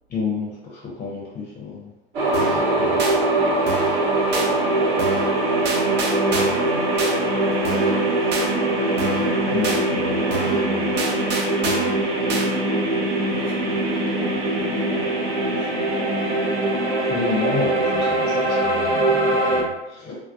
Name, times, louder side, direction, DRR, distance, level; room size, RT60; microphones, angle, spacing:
voice 1, 0.1-1.9 2.4-3.0 9.5-10.9 17.1-20.2, left 4 dB, 25° left, -3 dB, 0.6 m, -30 dB
sound 1, 2.1-19.6, right 2 dB, 60° right, 1.1 m, -22 dB
sound 2, 2.3-2.6 3.0-3.2 3.7-4.0 4.3-4.5 5.0-5.3 5.7-6.6 7.0-7.1 7.6-8.0 8.3-8.5 9.0-9.3 9.6-9.8 10.3-10.6 11.0-12.0 12.3-12.5, right 2 dB, 35° right, 0.6 m, -28 dB
voice 2, 2.4-3.0 3.3-7.2 7.5-8.8 11.6-15.8 16.2-16.3, left 1 dB, 90° left, -3 dB, 0.6 m, -44 dB
2.6 x 2.0 x 2.4 m, 0.99 s
figure-of-eight pair, 80°, 32 cm